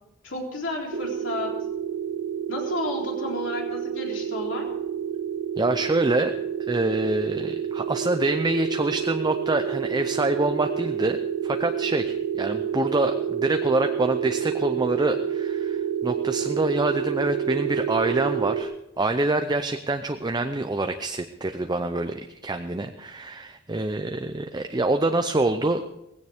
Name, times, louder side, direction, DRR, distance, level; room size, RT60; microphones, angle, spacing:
voice 1, 0.2-1.6 2.5-4.7, left 2 dB, 70° left, -1 dB, 3.8 m, -32 dB
sound 1, 0.9-18.6, right 8 dB, 85° right, 1.4 m, -29 dB
voice 2, 5.6-6.3 6.7-25.8, right 2 dB, 20° right, 7 dB, 0.6 m, -26 dB
18.0 x 16.0 x 3.6 m, 0.84 s
head